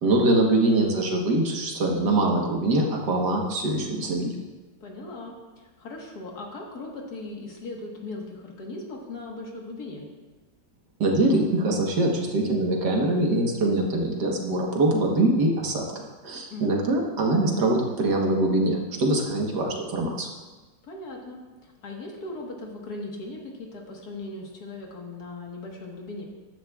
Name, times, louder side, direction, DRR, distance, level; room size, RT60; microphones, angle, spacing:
voice 1, 0.0-4.4 11.0-15.9 16.2-20.3, right 2 dB, 65° right, 0 dB, 1.9 m, -23 dB
voice 2, 4.8-10.1 16.5-16.8 20.8-26.2, left 2 dB, 60° left, -1 dB, 1.9 m, -38 dB
14.0 x 10.5 x 2.4 m, 1.2 s
omnidirectional pair, 2.0 m